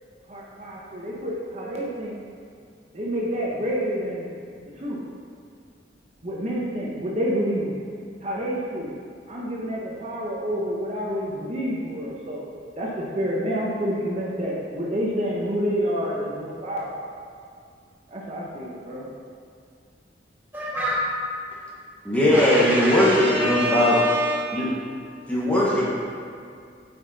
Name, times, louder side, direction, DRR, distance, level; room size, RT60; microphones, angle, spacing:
voice 1, 0.3-2.2 2.9-4.3 4.8-5.0 6.2-7.7 8.2-8.9 9.3-12.4 12.8-16.9 18.1-19.1, equal, 40° right, -5 dB, 1.0 m, -28 dB
voice 2, 20.5-21.1 22.3-24.4, equal, 10° right, -7 dB, 2.0 m, -25 dB
voice 3, 22.0-24.0 24.5-24.7 25.3-25.9, left 1 dB, 10° left, -7 dB, 1.4 m, -19 dB
9.4 x 5.4 x 4.2 m, 2.3 s
head